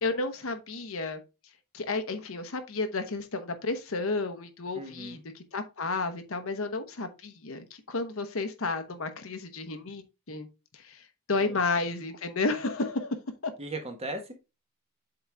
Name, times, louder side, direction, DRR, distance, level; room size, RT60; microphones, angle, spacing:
voice 1, 0.0-1.2 1.7-5.2 5.5-10.5 10.7-13.2 13.4-13.5, left 3 dB, 65° left, 1.0 m, -32 dB
voice 2, 4.7-5.2 11.4-11.6 13.6-14.3, right 2 dB, 30° right, 1.4 m, -37 dB
7.7 x 3.9 x 3.4 m
head